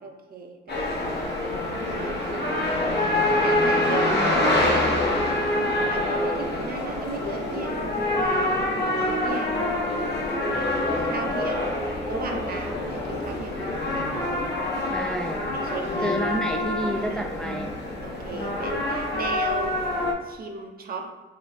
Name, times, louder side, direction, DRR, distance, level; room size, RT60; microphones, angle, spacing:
voice 1, 0.0-1.4 1.9-2.7 3.0-5.4 5.9-8.6 9.2-9.6 10.4-11.7 12.0-14.3 15.0-15.1 15.5-16.2 17.1-17.3 18.0-19.8 20.2-21.1, right 3 dB, 50° right, 3 dB, 0.8 m, -37 dB
sound 1, 0.7-20.1, left 1 dB, 60° left, 1.1 m, -26 dB
voice 2, 14.9-15.5 16.0-17.7, equal, 5° left, 3 dB, 0.4 m, -29 dB
4.8 x 2.8 x 3.4 m, 1.3 s
cardioid pair, 90°, 20 cm